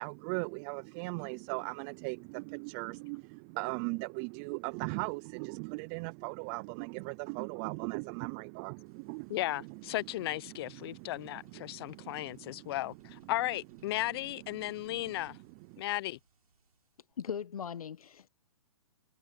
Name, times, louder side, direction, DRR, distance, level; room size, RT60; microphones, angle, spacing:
voice 1, 0.0-9.8 10.5-12.8 13.2-13.3 15.3-15.4 15.7-15.8, right 31 dB, 25° right, 0.4 m, -39 dB
sound 1, 8.9-17.1, right 5 dB, 85° right, 7.1 m, -65 dB
voice 2, 9.3-15.4 15.8-16.2, left 16 dB, 40° left, 0.7 m, -35 dB
voice 3, 17.2-18.3, left 7 dB, 75° left, 1.1 m, -39 dB
hypercardioid pair, 135°, 19 cm